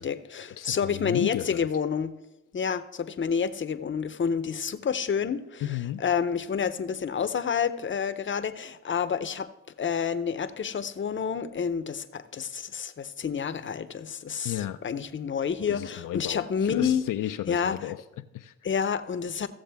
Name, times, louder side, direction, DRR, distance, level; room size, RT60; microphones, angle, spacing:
voice 1, 0.0-2.1 2.5-9.5 9.8-17.0 17.5-17.8 18.6-19.5, left 7 dB, 40° left, 11 dB, 0.7 m, -29 dB
voice 2, 0.6-1.7 5.6-6.0 14.4-14.8 15.7-18.5, left 13 dB, 80° left, 8 dB, 0.5 m, -33 dB
15.0 x 7.1 x 3.5 m, 0.95 s
cardioid pair, 65°, 31 cm